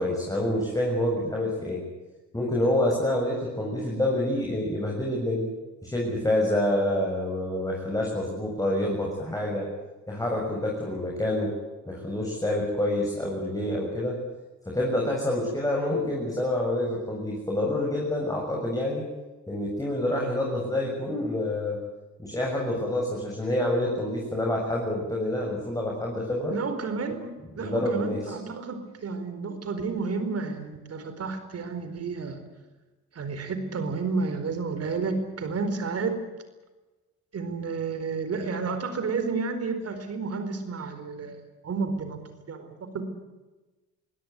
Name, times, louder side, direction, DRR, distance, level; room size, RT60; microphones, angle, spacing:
voice 1, 0.0-1.8 2.3-5.5 5.8-9.7 10.1-11.5 11.9-14.2 14.7-19.0 19.5-21.8 22.2-26.6 27.6-28.2, left 1 dB, 10° left, -2 dB, 7.0 m, -27 dB
voice 2, 26.5-32.4 33.1-36.2 37.3-42.2 42.5-43.0, right 4 dB, 55° right, 9 dB, 4.6 m, -31 dB
23.0 x 17.0 x 9.6 m, 1.2 s
cardioid pair, 90°, 30 cm